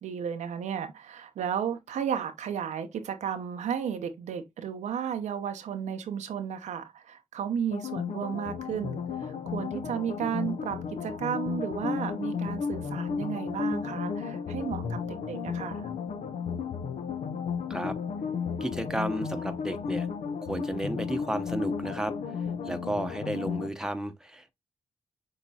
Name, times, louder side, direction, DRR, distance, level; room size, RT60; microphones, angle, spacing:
voice 1, 0.0-15.9, right 8 dB, 90° right, 0.7 m, -33 dB
sound 1, 7.7-23.7, left 6 dB, 75° left, 0.6 m, -33 dB
voice 2, 18.6-20.1 20.5-22.1 22.6-24.5, right 1 dB, 5° right, 0.8 m, -32 dB
6.4 x 3.0 x 2.7 m
cardioid pair, 60°, 12 cm